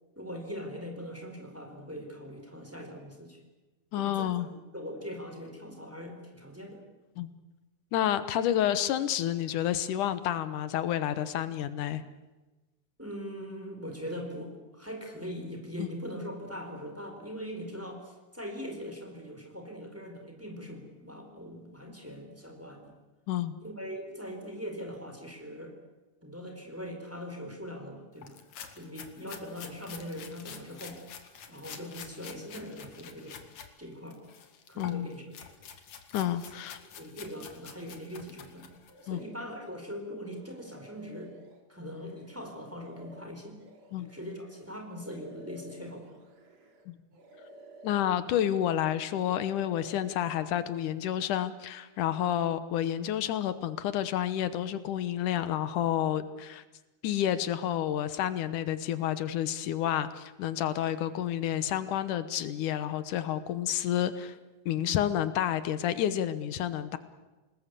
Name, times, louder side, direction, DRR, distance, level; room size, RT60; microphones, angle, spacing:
voice 1, 0.1-3.4 3.9-4.3 4.7-6.8 13.0-22.9 23.6-25.7 26.2-28.4 28.7-31.0 31.5-33.4 33.8-34.2 34.7-35.2 36.9-38.7 39.0-41.3 41.7-43.6 44.1-46.1, equal, 5° right, 3 dB, 4.5 m, -41 dB
voice 2, 3.9-4.5 7.2-7.3 7.9-12.0 15.8-15.9 23.3-23.5 34.8-35.1 36.1-36.8 39.1-39.2 43.9-44.1 46.9-47.0 47.8-56.6 57.0-64.4 64.7-67.0, left 11 dB, 85° left, 12 dB, 2.6 m, -30 dB
sound 1, 28.2-33.7 34.1-39.0, left 7 dB, 65° left, 3.2 m, -48 dB
sound 2, 38.9-39.8 40.2-46.9 47.1-49.1 49.4-50.8, left 1 dB, 55° right, 3.8 m, -54 dB
28.0 x 20.0 x 8.4 m, 1.2 s
omnidirectional pair, 3.5 m